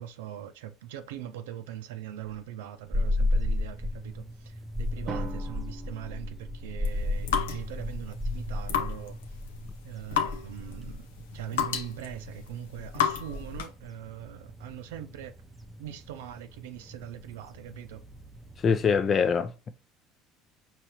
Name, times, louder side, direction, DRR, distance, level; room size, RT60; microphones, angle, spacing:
voice 1, 0.0-9.2 9.8-11.1 11.3-15.3 15.8-18.0, right 11 dB, 85° right, 0.6 m, -41 dB
sound 1, 2.9-19.0, left 2 dB, 5° right, 0.7 m, -35 dB
Drum, 5.1-7.1, right 3 dB, 45° right, 0.8 m, -41 dB
sound 2, 6.8-13.8, left 8 dB, 90° left, 0.6 m, -33 dB
voice 2, 18.6-19.7, left 6 dB, 40° left, 0.6 m, -24 dB
5.0 x 3.1 x 2.9 m
supercardioid pair, 85°, 0 cm